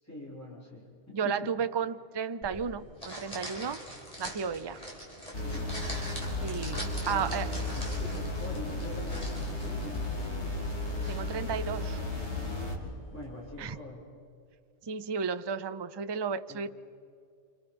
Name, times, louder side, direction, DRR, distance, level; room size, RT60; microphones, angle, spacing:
voice 1, 0.0-1.5 5.3-5.7 6.8-10.4 12.3-14.0 16.5-16.7, left 2 dB, 10° left, -4 dB, 6.8 m, -45 dB
voice 2, 1.1-3.8 4.2-4.8 6.4-7.5 11.1-12.0 13.6-13.8 14.8-16.7, right 6 dB, 30° right, 11 dB, 0.6 m, -33 dB
sound 1, 2.4-13.8, equal, 30° left, 5.2 m, -45 dB
sound 2, 5.3-12.8, left 2 dB, 65° left, 3.6 m, -34 dB
29.0 x 29.0 x 5.4 m, 2.3 s
omnidirectional pair, 1.3 m